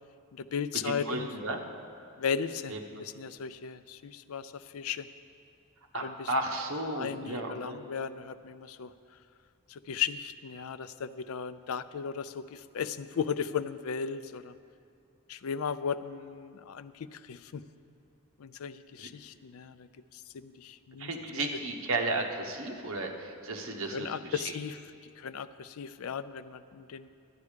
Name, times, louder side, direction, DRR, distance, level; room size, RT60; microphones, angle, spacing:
voice 1, 0.3-1.3 2.2-2.7 3.0-5.1 6.0-6.3 6.9-8.9 9.7-14.5 15.3-17.6 18.4-21.5 23.9-24.8 25.2-27.1, left 7 dB, 85° left, 13 dB, 0.4 m, -36 dB
voice 2, 0.8-1.6 2.7-2.8 5.9-7.8 19.0-19.1 21.0-24.4, right 2 dB, 80° right, 3 dB, 1.1 m, -34 dB
12.0 x 9.6 x 5.0 m, 2.4 s
head